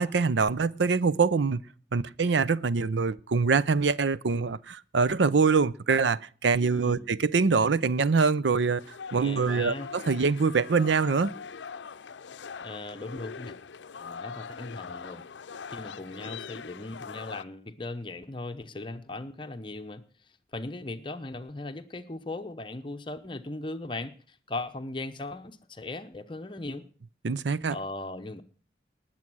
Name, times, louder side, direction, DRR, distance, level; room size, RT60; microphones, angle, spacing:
voice 1, 0.0-1.6 1.9-8.8 9.1-11.3 27.2-27.8, right 4 dB, 80° right, 0.6 m, -24 dB
voice 2, 6.6-7.1 9.1-9.9 12.6-13.5 14.0-15.2 15.7-20.0 20.5-26.9 27.7-28.4, left 2 dB, 25° left, 0.8 m, -38 dB
sound 1, 8.8-17.4, left 6 dB, 85° left, 0.6 m, -42 dB
19.5 x 7.6 x 6.2 m
head